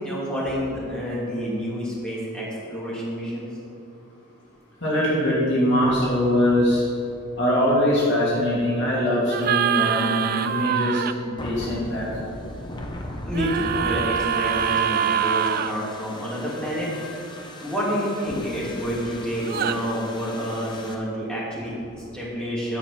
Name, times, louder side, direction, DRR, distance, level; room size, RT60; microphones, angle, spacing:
voice 1, 0.0-3.5 13.2-16.9 17.6-22.8, equal, 5° left, -8 dB, 2.7 m, -28 dB
voice 2, 4.8-6.8 7.4-12.0, left 1 dB, 55° left, -7 dB, 2.8 m, -22 dB
sound 1, 9.3-11.1 13.3-15.7 19.4-19.8, right 8 dB, 45° right, 0.3 m, -24 dB
sound 2, 11.4-20.9, left 1 dB, 20° left, 0.8 m, -38 dB
10.0 x 5.8 x 7.3 m, 2.5 s
head